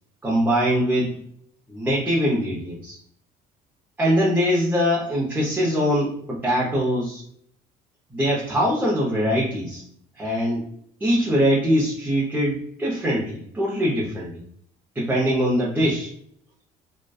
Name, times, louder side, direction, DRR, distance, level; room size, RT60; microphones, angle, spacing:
voice 1, 0.2-1.1 1.7-3.0 4.0-7.2 8.1-9.8 10.2-10.7 11.0-14.4 14.9-16.1, equal, 10° right, -6 dB, 0.6 m, -22 dB
2.6 x 2.2 x 2.2 m, 0.65 s
cardioid pair, 110°, 17 cm